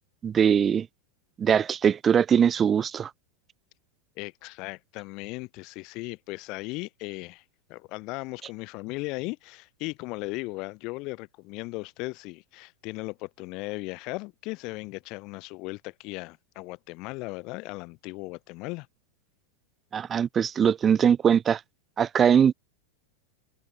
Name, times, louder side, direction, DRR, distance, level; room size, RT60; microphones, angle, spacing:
voice 1, 0.2-0.9 1.4-3.1 19.9-21.6 22.0-22.5, right 8 dB, 20° right, 0.8 m, -21 dB
voice 2, 4.2-7.4 7.7-18.9, left 25 dB, 45° left, 3.2 m, -37 dB
supercardioid pair, 135°, 0 cm